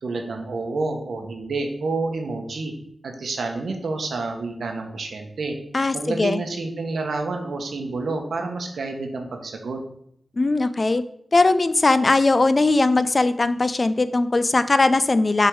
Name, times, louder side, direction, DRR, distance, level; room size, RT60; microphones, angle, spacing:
voice 1, 0.0-2.7 3.0-5.6 5.9-9.8, right 3 dB, 80° right, 4 dB, 1.0 m, -29 dB
voice 2, 5.7-6.4 10.4-11.0 11.3-15.5, left 3 dB, 45° left, 13 dB, 0.4 m, -19 dB
6.5 x 3.6 x 4.7 m, 0.70 s
cardioid pair, 45°, 0 cm